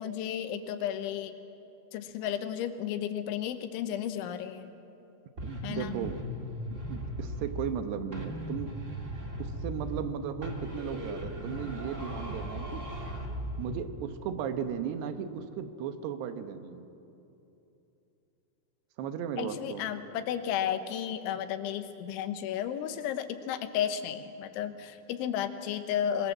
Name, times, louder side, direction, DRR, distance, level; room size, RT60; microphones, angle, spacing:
voice 1, 0.0-1.4 1.9-4.7 5.6-6.0 19.4-26.3, left 9 dB, 80° left, 9 dB, 3.4 m, -33 dB
sound 1, 5.4-7.8 8.1-10.1 10.4-13.9, equal, 30° right, 1.5 m, -37 dB
voice 2, 5.4-6.2 6.7-8.7 9.4-12.8 13.6-16.9 19.0-19.8, right 8 dB, 70° right, 8 dB, 2.9 m, -36 dB
25.0 x 22.0 x 7.5 m, 2.9 s
omnidirectional pair, 5.4 m